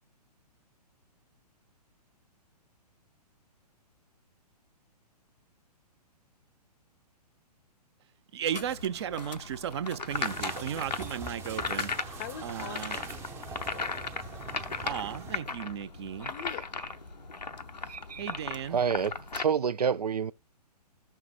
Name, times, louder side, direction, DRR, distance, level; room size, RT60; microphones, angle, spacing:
voice 1, 8.3-13.0 14.8-16.3 18.2-18.8, right 9 dB, 40° right, 0.8 m, -35 dB
sound 1, 8.5-19.4, left 4 dB, 80° left, 0.8 m, -37 dB
sound 2, 10.1-15.4, right 4 dB, 10° right, 0.7 m, -43 dB
voice 2, 12.2-14.0 15.1-15.2 16.3-17.0, left 11 dB, 25° left, 0.6 m, -45 dB
voice 3, 17.9-18.4 18.7-20.3, right 7 dB, 70° right, 0.6 m, -29 dB
14.5 x 5.9 x 2.4 m
figure-of-eight pair, 120°, 21 cm